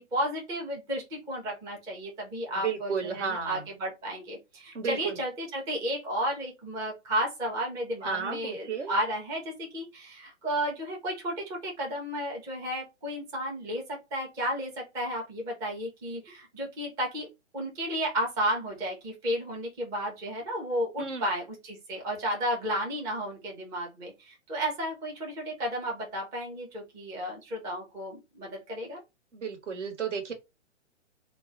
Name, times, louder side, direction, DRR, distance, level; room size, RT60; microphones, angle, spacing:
voice 1, 0.0-17.3 17.5-29.0, equal, 10° right, 0.5 m, -33 dB
voice 2, 2.5-3.6 4.7-5.2 8.0-8.9 21.0-21.3 29.3-30.3, right 6 dB, 75° right, 1.1 m, -33 dB
2.3 x 2.0 x 3.8 m
figure-of-eight pair, 125°, 36 cm